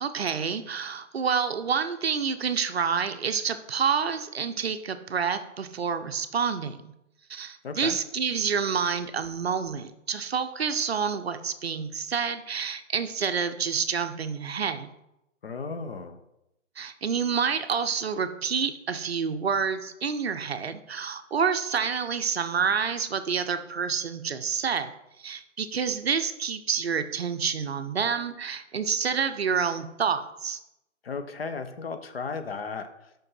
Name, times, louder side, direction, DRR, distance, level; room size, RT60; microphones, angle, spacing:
voice 1, 0.0-6.9 7.3-14.9 16.8-24.9 25.2-30.6, right 6 dB, 55° right, 9 dB, 0.6 m, -28 dB
voice 2, 7.6-8.0 15.4-16.2 31.0-32.9, left 4 dB, 50° left, 8 dB, 0.8 m, -34 dB
5.6 x 5.3 x 5.6 m, 0.86 s
hypercardioid pair, 165°, 38 cm